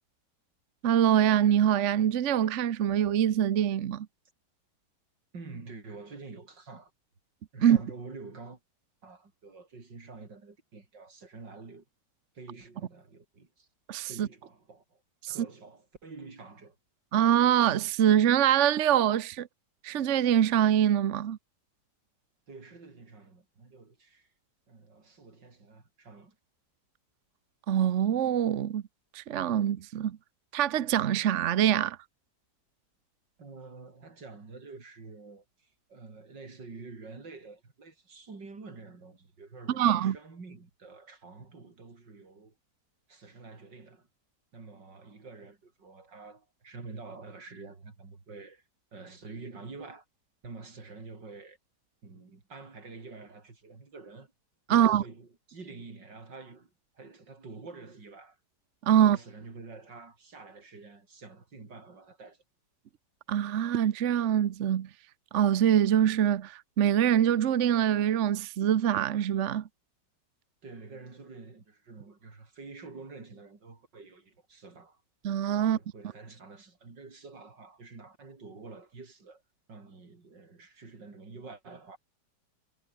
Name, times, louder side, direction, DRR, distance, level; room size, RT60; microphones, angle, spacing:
voice 1, 0.8-4.1 7.6-7.8 13.9-14.3 15.2-15.3 17.1-19.5 19.8-21.4 27.7-28.8 29.1-30.2 30.5-32.0 39.8-40.2 54.7-55.0 58.8-59.2 63.3-64.9 65.3-69.6 75.2-75.8, right 10 dB, 55° right, 0.9 m, -24 dB
voice 2, 5.3-6.9 7.5-8.6 9.0-11.8 12.3-13.7 14.1-15.0 15.3-16.8 22.5-24.3 24.7-26.4 33.4-42.6 43.1-44.1 44.5-48.6 48.9-50.0 50.4-51.6 52.0-54.3 54.7-58.4 59.0-62.4 70.6-75.0 75.6-79.4 79.7-82.0, right 4 dB, 75° right, 4.6 m, -47 dB
omnidirectional pair, 1.9 m